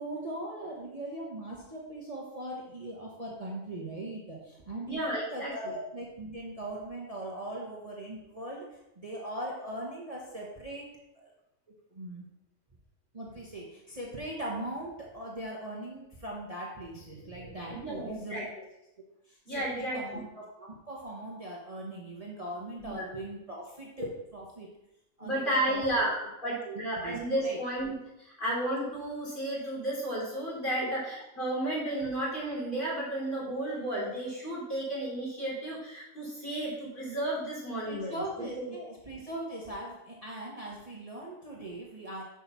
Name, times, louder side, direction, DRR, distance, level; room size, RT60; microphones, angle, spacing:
voice 1, 0.0-10.9 11.2-11.3 11.9-12.2 13.1-18.4 19.3-24.8 25.2-25.8 26.6-27.6 30.8-30.9 37.9-42.2, right 1 dB, 30° right, -3 dB, 1.2 m, -40 dB
voice 2, 4.8-5.5 17.7-18.4 19.5-20.0 22.8-23.0 25.2-38.2 38.6-38.7, right 1 dB, 40° left, -6 dB, 3.7 m, -33 dB
6.7 x 5.4 x 5.7 m, 0.89 s
omnidirectional pair, 1.3 m